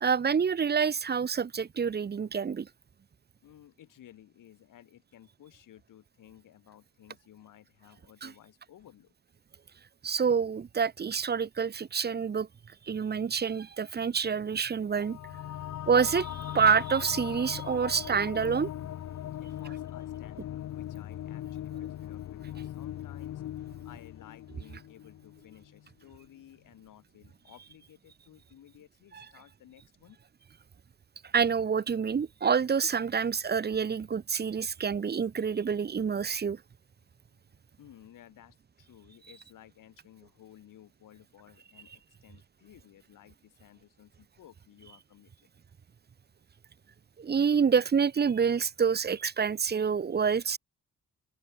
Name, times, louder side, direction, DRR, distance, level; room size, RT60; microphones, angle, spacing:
voice 1, 0.0-2.7 8.2-8.3 10.0-12.5 12.9-15.2 15.9-18.7 31.3-36.6 47.2-50.6, right 6 dB, 30° right, 0.6 m, -27 dB
voice 2, 3.4-9.1 19.2-23.4 23.8-30.2 34.8-34.9 37.3-37.4 37.8-45.3, left 12 dB, 85° left, 2.5 m, -55 dB
sound 1, 14.9-25.9, left 12 dB, 60° left, 0.6 m, -39 dB
open air
cardioid pair, 65°, 31 cm